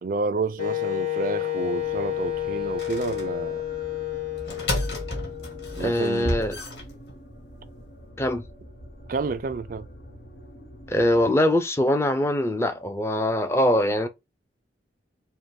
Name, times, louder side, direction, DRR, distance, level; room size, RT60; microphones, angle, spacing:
voice 1, 0.0-3.6 5.7-6.4 9.1-9.9, right 4 dB, 50° right, 0.4 m, -30 dB
Wind instrument woodwind instrument, 0.6-6.4, left 13 dB, 45° left, 2.7 m, -30 dB
sound 1, 1.8-11.2, equal, 85° left, 1.1 m, -45 dB
sound 2, 2.8-3.2 4.3-7.4, left 1 dB, 70° left, 1.8 m, -31 dB
voice 2, 5.8-6.6 8.2-8.4 10.9-14.1, left 1 dB, 15° left, 0.5 m, -22 dB
5.7 x 2.1 x 3.6 m
head